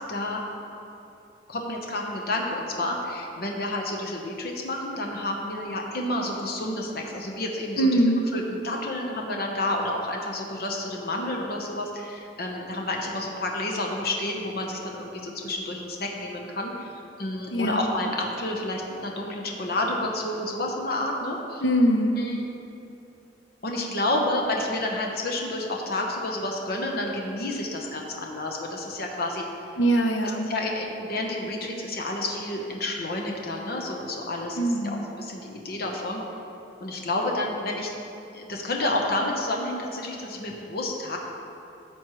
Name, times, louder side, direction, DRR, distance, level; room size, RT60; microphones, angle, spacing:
voice 1, 0.1-0.7 1.5-8.0 8.3-16.9 17.2-21.6 22.1-22.5 23.6-29.5 30.5-36.2 36.8-37.9 38.3-41.2, left 1 dB, 55° left, 0 dB, 0.9 m, -30 dB
voice 2, 7.8-8.2 17.5-17.9 21.6-22.2 29.8-30.5 34.6-35.0, right 1 dB, 80° left, 4 dB, 0.8 m, -22 dB
12.0 x 7.2 x 3.1 m, 2.7 s
head